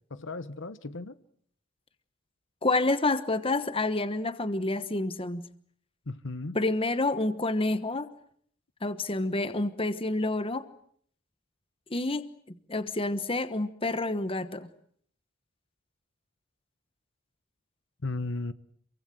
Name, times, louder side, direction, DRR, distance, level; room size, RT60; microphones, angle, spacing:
voice 1, 0.1-1.2 6.1-6.6 18.0-18.5, left 2 dB, 60° left, 1.1 m, -35 dB
voice 2, 2.6-5.5 6.5-8.1 8.8-10.7 11.9-12.2 12.7-14.7, left 2 dB, 25° left, 1.2 m, -28 dB
27.5 x 23.5 x 7.7 m
head